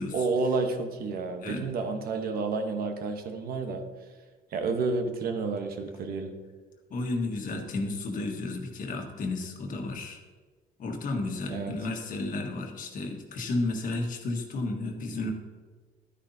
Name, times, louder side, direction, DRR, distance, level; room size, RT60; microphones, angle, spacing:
voice 1, 0.1-3.8 4.5-6.3 11.5-11.7, right 4 dB, 60° right, 6 dB, 1.1 m, -30 dB
voice 2, 6.9-10.2 10.8-15.3, left 2 dB, 55° left, 3 dB, 1.5 m, -32 dB
11.0 x 9.7 x 2.8 m, 1.4 s
cardioid pair, 110°, 17 cm